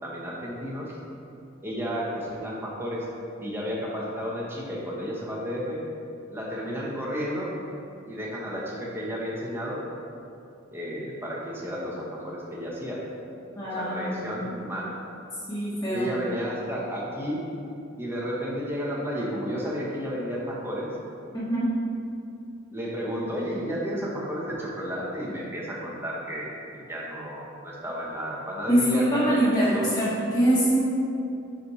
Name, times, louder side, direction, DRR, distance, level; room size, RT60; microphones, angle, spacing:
voice 1, 0.0-0.9 1.6-3.0 3.4-5.8 6.3-7.5 8.1-9.8 10.7-13.0 13.6-14.9 15.9-17.4 18.0-20.9 22.7-29.9, equal, 10° right, -5 dB, 1.0 m, -32 dB
voice 2, 13.5-14.6 15.5-16.1 21.3-21.7 28.7-30.8, right 1 dB, 20° left, -12 dB, 1.1 m, -24 dB
6.4 x 4.2 x 4.2 m, 2.6 s
head